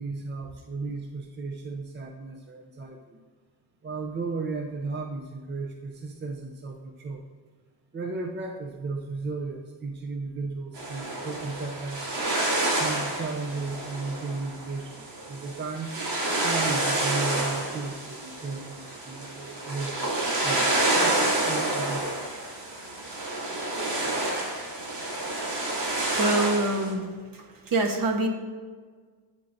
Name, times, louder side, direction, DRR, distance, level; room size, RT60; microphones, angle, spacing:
voice 1, 0.0-3.2 3.8-7.2 7.9-12.1 12.8-15.9 16.4-22.6 23.1-23.3, right 3 dB, 25° right, 1 dB, 0.6 m, -35 dB
sound 1, 10.7-26.9, right 2 dB, 65° right, 2.9 m, -29 dB
voice 2, 26.1-27.1 27.3-28.3, right 2 dB, 50° right, 3 dB, 1.3 m, -25 dB
10.5 x 9.0 x 2.7 m, 1.5 s
wide cardioid pair, 175°, 44 cm